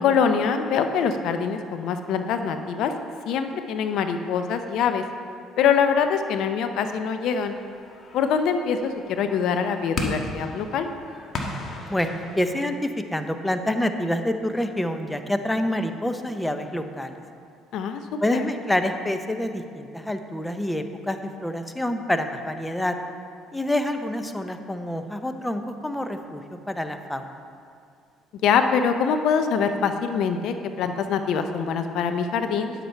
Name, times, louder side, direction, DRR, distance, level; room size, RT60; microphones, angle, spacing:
voice 1, 0.0-2.9 3.3-5.0 5.6-7.6 8.1-10.9 17.7-18.0 18.3-18.5 28.4-32.7, left 6 dB, 70° left, 7 dB, 0.6 m, -24 dB
sound 1, 7.4-12.5, left 2 dB, 45° left, 1.5 m, -35 dB
voice 2, 11.9-17.2 18.2-22.9 23.5-27.3, left 1 dB, 10° left, 7 dB, 0.7 m, -27 dB
10.0 x 8.1 x 4.5 m, 2.4 s
supercardioid pair, 85°, 0 cm